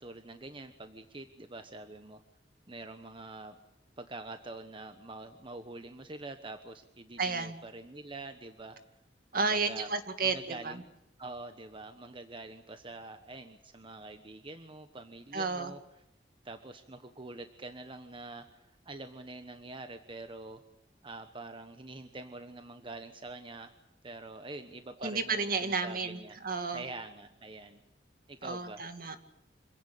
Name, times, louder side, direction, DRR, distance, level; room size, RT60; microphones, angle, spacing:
voice 1, 0.0-2.2 2.7-3.6 4.0-8.8 9.3-9.9 10.2-10.9 11.2-15.8 16.4-20.6 21.0-23.7 24.0-26.4 26.7-27.8 28.3-28.8, right 2 dB, 30° right, 8 dB, 1.2 m, -45 dB
voice 2, 7.2-7.6 9.3-10.8 15.3-15.7 25.0-26.2 26.4-26.8 28.4-29.2, right 4 dB, 55° right, 8 dB, 2.3 m, -32 dB
26.5 x 16.5 x 8.5 m, 0.86 s
head